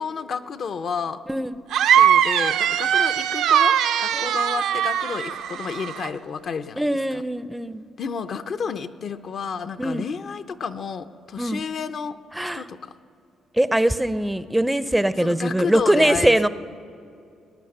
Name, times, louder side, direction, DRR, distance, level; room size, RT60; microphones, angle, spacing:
voice 1, 0.0-1.2 1.9-7.2 8.0-12.2 12.5-12.9 15.2-16.5, left 6 dB, 55° left, 9 dB, 0.6 m, -31 dB
voice 2, 1.3-1.6 4.1-4.4 6.8-7.8 9.8-10.0 11.4-11.6 12.3-12.7 13.5-16.5, right 1 dB, 5° right, 14 dB, 0.4 m, -22 dB
Witch Death, 1.7-6.1, right 9 dB, 80° right, 0.5 m, -20 dB
18.0 x 9.5 x 6.6 m, 2.6 s
cardioid pair, 90°, 0 cm